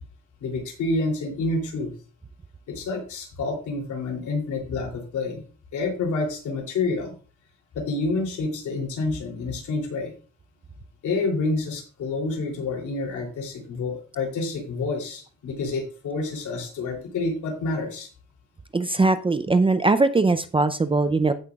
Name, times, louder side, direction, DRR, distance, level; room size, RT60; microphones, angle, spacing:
voice 1, 0.4-1.9 2.7-5.4 5.7-7.1 7.7-10.1 11.0-18.1, left 3 dB, 75° left, 1 dB, 3.2 m, -28 dB
voice 2, 18.7-21.3, right 3 dB, 20° right, 10 dB, 0.5 m, -20 dB
15.5 x 5.8 x 2.4 m, 0.39 s
cardioid pair, 90°, 30 cm